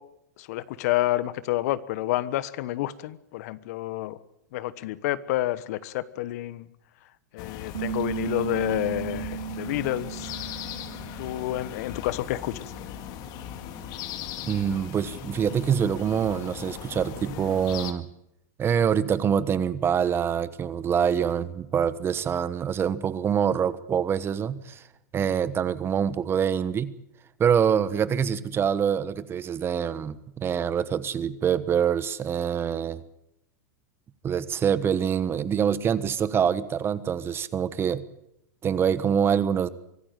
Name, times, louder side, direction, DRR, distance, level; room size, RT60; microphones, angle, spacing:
voice 1, 0.4-4.2 4.5-6.7 7.3-10.3 11.2-13.0, left 15 dB, 60° left, 16 dB, 1.2 m, -29 dB
sound 1, 7.4-17.9, left 11 dB, 45° left, 2.2 m, -39 dB
Bass guitar, 7.7-12.1 12.4-14.0, right 11 dB, 80° right, 4.1 m, -37 dB
voice 2, 14.4-18.1 18.6-24.8 25.1-26.9 27.4-33.0 34.2-38.0 38.6-39.7, right 8 dB, 25° right, 16 dB, 1.2 m, -25 dB
24.5 x 14.0 x 9.1 m, 0.79 s
hypercardioid pair, 115°, 9 cm